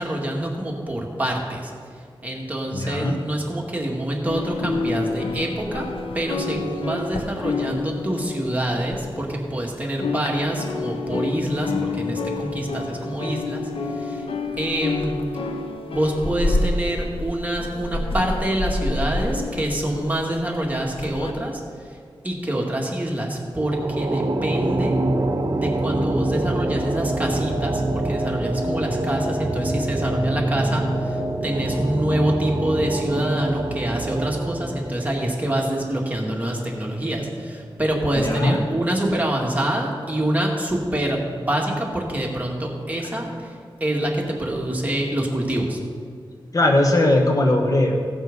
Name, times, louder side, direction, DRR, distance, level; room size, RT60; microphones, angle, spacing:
voice 1, 0.0-1.7 2.2-5.8 6.1-13.6 14.0-14.2 14.6-15.2 15.9-21.6 22.2-25.0 25.5-31.2 31.4-43.5 43.8-45.8, right 1 dB, 15° right, -1 dB, 2.1 m, -26 dB
voice 2, 2.7-3.2 38.2-38.6 46.5-48.0, left 1 dB, 40° left, 1 dB, 1.2 m, -19 dB
sound 1, 4.3-9.6 9.9-21.3, left 3 dB, 90° left, 0.8 m, -28 dB
sound 2, 23.6-36.1, right 1 dB, 45° right, 1.1 m, -26 dB
16.5 x 6.2 x 5.4 m, 2.1 s
wide cardioid pair, 65°, 9 cm